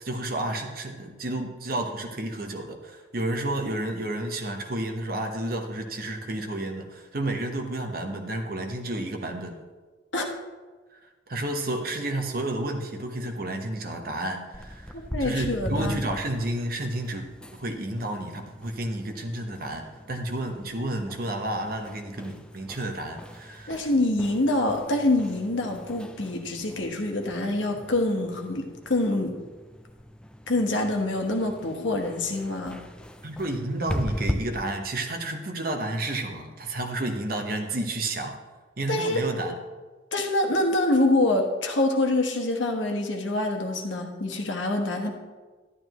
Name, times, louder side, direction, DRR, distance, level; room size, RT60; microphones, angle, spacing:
voice 1, 0.0-9.6 11.3-14.9 15.2-17.3 17.5-23.8 33.2-38.4 38.8-39.6, right 1 dB, 50° right, 4 dB, 1.0 m, -31 dB
sound 1, 14.5-34.3, equal, 5° left, 0.4 m, -39 dB
voice 2, 14.9-16.1 23.7-29.3 30.5-32.8 38.9-39.2 40.1-45.1, left 2 dB, 85° left, 3 dB, 1.3 m, -25 dB
11.5 x 11.0 x 3.1 m, 1.3 s
head